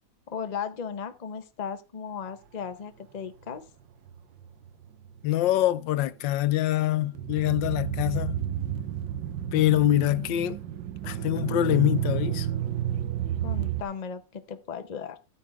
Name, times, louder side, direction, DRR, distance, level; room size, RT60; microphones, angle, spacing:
voice 1, 0.3-3.6 13.4-15.2, left 7 dB, 35° left, 0.6 m, -36 dB
sound 1, 4.1-5.2 7.2-13.8, right 11 dB, 90° right, 1.6 m, -31 dB
voice 2, 5.2-8.4 9.5-10.6 11.0-12.5, left 14 dB, 85° left, 1.4 m, -24 dB
12.0 x 9.6 x 3.5 m
omnidirectional pair, 1.9 m